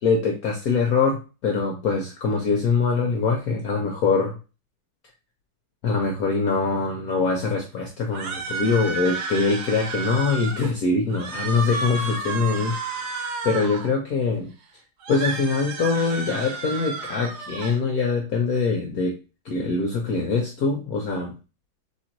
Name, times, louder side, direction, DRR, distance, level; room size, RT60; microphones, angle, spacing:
voice 1, 0.0-4.4 5.8-13.1 13.4-14.5 15.1-19.2 19.4-21.4, left 4 dB, 65° left, 2 dB, 1.0 m, -23 dB
sound 1, 8.1-10.7 11.1-13.9 15.0-17.8, right 4 dB, 65° right, 1.3 m, -31 dB
3.8 x 3.1 x 4.4 m, 0.33 s
omnidirectional pair, 2.2 m